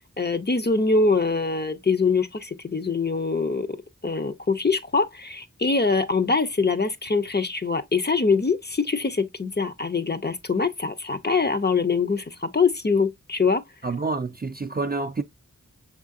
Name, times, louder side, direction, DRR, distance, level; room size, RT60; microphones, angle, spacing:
voice 1, 0.2-3.7 4.0-13.6, left 4 dB, 35° left, 0.5 m, -23 dB
voice 2, 13.8-15.2, right 3 dB, 30° right, 0.4 m, -28 dB
6.1 x 3.6 x 2.4 m
wide cardioid pair, 45°, 31 cm